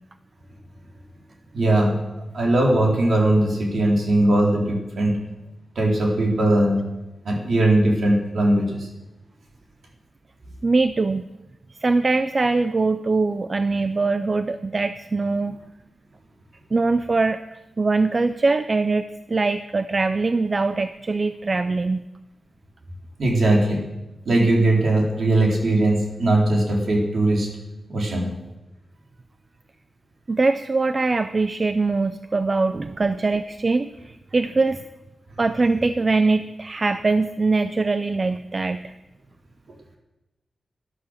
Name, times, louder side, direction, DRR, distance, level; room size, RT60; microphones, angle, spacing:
voice 1, 1.5-2.0 2.3-5.1 5.8-6.8 7.2-8.9 23.2-23.8 24.3-27.5 27.9-28.3, right 1 dB, 55° right, -1 dB, 3.9 m, -19 dB
voice 2, 10.6-11.3 11.8-15.6 16.7-17.4 17.8-22.0 30.3-34.8 35.4-38.9, right 3 dB, 30° right, 11 dB, 0.4 m, -22 dB
13.0 x 11.5 x 6.5 m, 1.0 s
wide cardioid pair, 155°, 0 cm